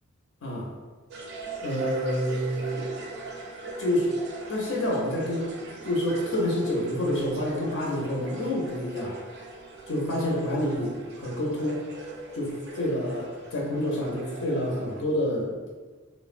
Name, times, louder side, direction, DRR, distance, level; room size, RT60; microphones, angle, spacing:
sound 1, 1.1-15.0, right 2 dB, 55° right, 0.4 m, -41 dB
voice 1, 1.6-2.9 3.8-4.1 4.5-5.5 5.8-9.2 9.9-11.9 12.3-15.7, left 1 dB, 70° left, -4 dB, 0.5 m, -28 dB
3.2 x 2.0 x 2.4 m, 1.4 s
head